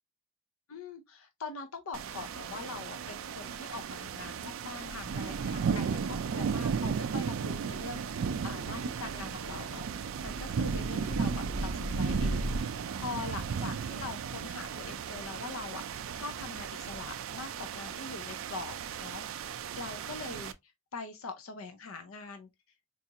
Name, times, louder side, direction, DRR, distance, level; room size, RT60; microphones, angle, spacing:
voice 1, 0.7-22.5, left 4 dB, 75° left, 0.5 m, -43 dB
sound 1, 1.9-20.5, right 6 dB, 70° right, 0.4 m, -35 dB
sound 2, 4.9-12.6, equal, 30° left, 0.5 m, -41 dB
3.9 x 2.4 x 2.7 m
head